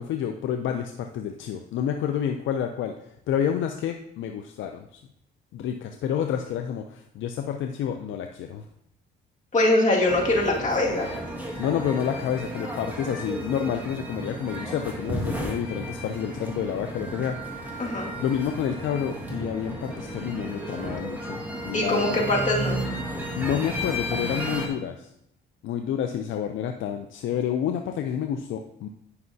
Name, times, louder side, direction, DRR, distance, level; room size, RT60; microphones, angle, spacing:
voice 1, 0.0-4.9 5.5-8.6 11.6-17.7 18.2-22.3 23.4-25.1 25.6-28.9, left 9 dB, 75° left, 5 dB, 0.5 m, -29 dB
voice 2, 9.5-11.1 17.8-18.1 21.7-22.8, left 2 dB, 40° left, -2 dB, 2.0 m, -22 dB
sound 1, 10.1-24.7, right 1 dB, 10° right, 1.7 m, -33 dB
9.7 x 5.5 x 2.7 m, 0.75 s
cardioid pair, 90°, 20 cm